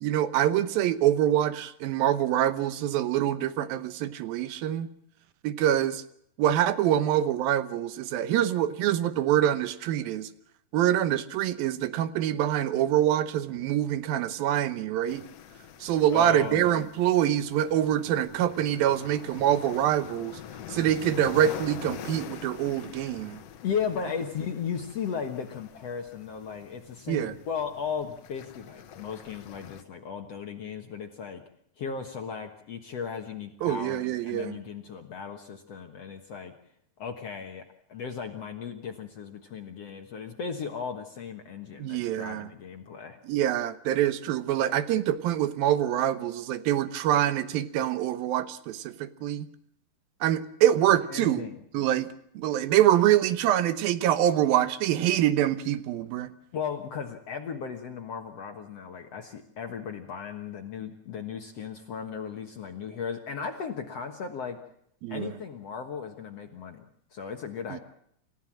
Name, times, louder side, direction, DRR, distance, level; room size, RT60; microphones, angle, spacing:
voice 1, 0.0-4.9 5.4-6.0 6.4-10.3 10.7-15.2 15.8-20.4 20.7-23.4 27.1-27.3 33.6-34.6 41.8-42.5 43.3-49.5 50.2-51.4 51.7-52.1 52.4-56.3 65.0-65.3 67.7-67.8, right 11 dB, 70° right, 13 dB, 2.5 m, -25 dB
sound 1, 15.1-29.8, left 9 dB, 90° left, 1.4 m, -45 dB
voice 2, 16.1-16.7 23.6-31.4 31.8-36.5 37.0-37.6 37.9-43.2 51.1-51.6 56.5-64.6 65.1-66.8 67.1-67.8, left 6 dB, 60° left, 5 dB, 1.7 m, -36 dB
28.0 x 15.0 x 7.4 m, 0.71 s
omnidirectional pair, 4.8 m